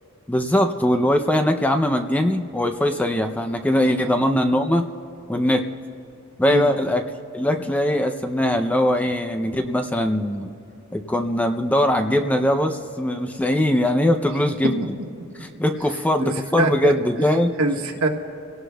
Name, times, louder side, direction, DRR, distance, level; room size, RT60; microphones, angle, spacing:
voice 1, 0.3-4.9 5.3-5.7 6.4-7.0 7.3-10.5 10.9-14.8 15.4-17.5, left 1 dB, 5° left, 6 dB, 0.5 m, -21 dB
voice 2, 6.5-6.8 14.6-14.7 16.2-16.9 17.6-18.1, right 2 dB, 70° right, 2 dB, 1.5 m, -24 dB
28.0 x 17.5 x 2.3 m, 2.9 s
head